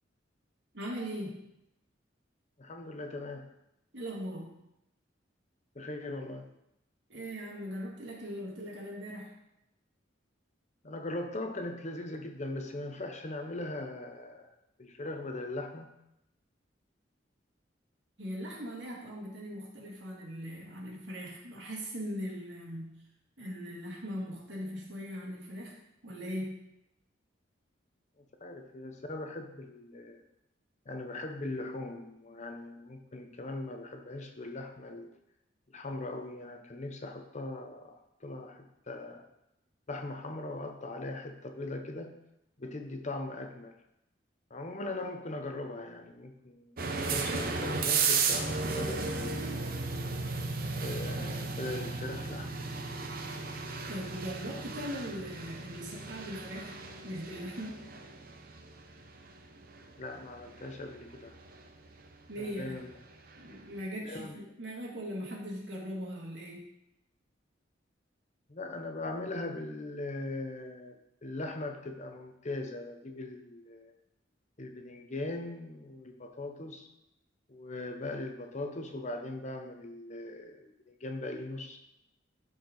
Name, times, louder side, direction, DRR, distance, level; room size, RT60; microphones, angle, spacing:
voice 1, 0.7-1.4 3.9-4.6 7.1-9.4 18.2-23.0 23.4-26.6 53.9-56.7 57.0-57.9 62.3-62.7 63.4-66.7, equal, 70° right, -3 dB, 2.4 m, -40 dB
voice 2, 2.6-3.5 5.7-6.5 10.8-14.5 14.8-15.9 28.4-30.2 30.9-35.1 35.7-39.2 39.9-42.1 42.6-43.7 44.5-46.8 47.0-49.7 50.8-52.7 60.0-61.4 62.4-62.9 64.0-64.4 68.5-73.9 74.6-76.9 77.5-81.8, left 2 dB, 40° left, 5 dB, 0.8 m, -40 dB
sound 1, 46.8-63.5, right 4 dB, 50° right, 0.8 m, -35 dB
12.5 x 4.6 x 4.0 m, 0.85 s
head